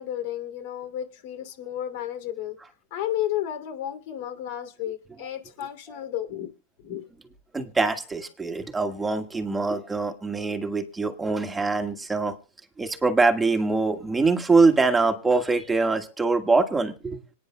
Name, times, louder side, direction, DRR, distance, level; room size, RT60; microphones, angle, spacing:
voice 1, 0.0-2.6 2.9-6.5 6.8-7.1, left 11 dB, 55° left, 2.7 m, -32 dB
voice 2, 7.5-12.3 12.8-17.2, right 3 dB, 10° right, 1.6 m, -23 dB
25.5 x 9.7 x 2.2 m
supercardioid pair, 140°, 0 cm